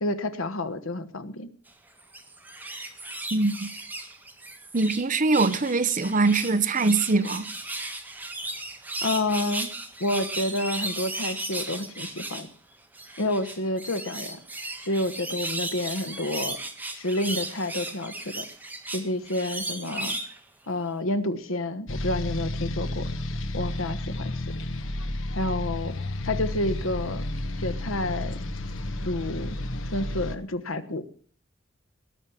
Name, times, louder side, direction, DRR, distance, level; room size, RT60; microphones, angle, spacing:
voice 1, 0.0-1.5 9.0-9.7 10.0-12.5 13.2-14.4 14.9-16.6 16.9-18.4 18.9-20.2 20.7-23.1 23.5-24.4 25.3-25.9 26.2-27.3 27.6-28.4 29.0-29.6 29.9-31.0, left 1 dB, 85° left, 1.3 m, -29 dB
sound 1, 2.0-5.0 5.3-12.5 12.9-20.4 20.8-20.9, right 2 dB, 10° right, 1.6 m, -35 dB
voice 2, 3.3-3.7 4.7-7.5, right 3 dB, 40° right, 0.9 m, -23 dB
sound 2, 21.9-30.4, left 1 dB, 70° left, 1.3 m, -32 dB
19.0 x 6.5 x 7.1 m
head